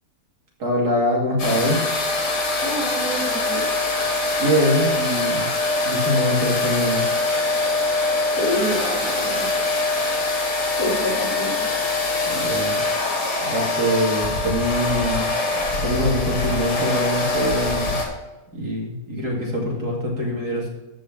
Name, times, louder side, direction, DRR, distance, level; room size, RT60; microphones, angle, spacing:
voice 1, 0.6-1.8 4.4-5.5 5.8-7.0 12.3-12.8 13.5-15.3 15.8-18.0 18.5-20.7, equal, 70° right, -2 dB, 3.1 m, -23 dB
sound 1, 1.4-18.1, left 2 dB, 85° left, 2.8 m, -23 dB
voice 2, 2.6-3.6 8.3-9.5 10.8-11.6, equal, 55° left, -8 dB, 4.6 m, -27 dB
14.0 x 5.1 x 6.1 m, 1.1 s
omnidirectional pair, 1.7 m